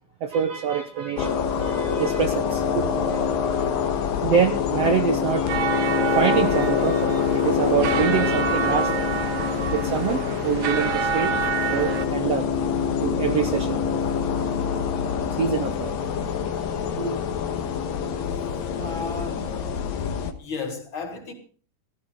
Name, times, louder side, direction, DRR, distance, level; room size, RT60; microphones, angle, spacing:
voice 1, 0.2-3.2 4.0-8.9 9.7-11.3 11.7-12.5 13.0-14.0 14.4-14.8 15.4-17.2, right 7 dB, 60° right, 1.8 m, -26 dB
sound 1, 1.2-20.3, left 7 dB, 90° left, 3.2 m, -25 dB
sound 2, 5.5-12.1, right 7 dB, 90° right, 3.0 m, -28 dB
voice 2, 14.9-15.2 18.4-19.6 20.4-21.3, left 4 dB, 35° left, 4.3 m, -35 dB
16.5 x 14.0 x 4.0 m
omnidirectional pair, 3.8 m